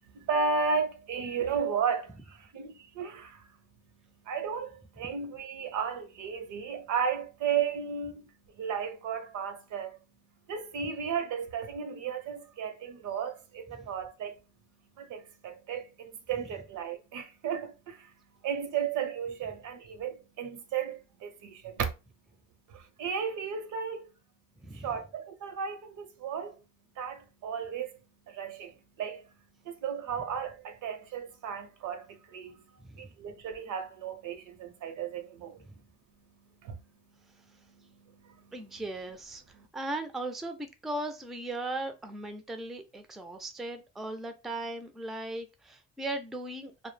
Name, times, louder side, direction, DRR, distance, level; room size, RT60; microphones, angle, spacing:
voice 1, 0.1-3.5 4.2-8.3 8.6-10.0 10.5-14.4 15.0-18.1 18.4-21.9 22.7-24.1 24.7-26.6 27.0-27.9 28.3-29.2 29.6-32.6 32.9-35.6 36.6-36.8 37.4-38.8 39.5-39.7, right 6 dB, 80° right, 0.6 m, -34 dB
voice 2, 24.6-25.0 32.8-33.1 35.6-35.7 38.5-39.4 39.7-46.7, right 2 dB, ahead, 0.3 m, -38 dB
2.2 x 2.0 x 3.1 m
cardioid pair, 90°, 30 cm